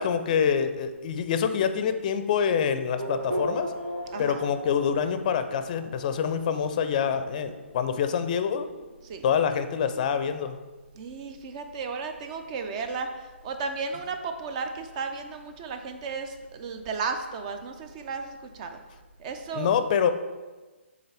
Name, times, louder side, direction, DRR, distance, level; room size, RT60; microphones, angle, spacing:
voice 1, 0.0-3.7 4.2-8.7 9.2-10.5 19.5-20.1, left 7 dB, 40° left, 10 dB, 0.5 m, -26 dB
Race car auto racing / Accelerating revving vroom, 3.0-9.1, equal, 80° right, 1.4 m, -38 dB
voice 2, 11.0-13.1 13.4-18.8 19.2-19.7, right 4 dB, 35° right, 7 dB, 0.7 m, -34 dB
7.9 x 4.0 x 3.4 m, 1.3 s
figure-of-eight pair, 135°, 7 cm